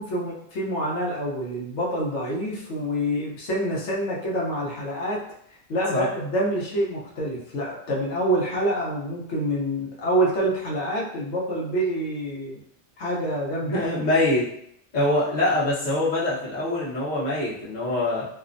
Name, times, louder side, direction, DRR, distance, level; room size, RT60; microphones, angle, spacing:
voice 1, 0.0-5.2 5.7-12.6 13.0-13.8, right 1 dB, 85° left, -4 dB, 1.0 m, -27 dB
voice 2, 13.7-14.5 14.9-18.3, left 1 dB, 45° left, -7 dB, 0.8 m, -24 dB
2.5 x 2.1 x 2.5 m, 0.71 s
omnidirectional pair, 1.1 m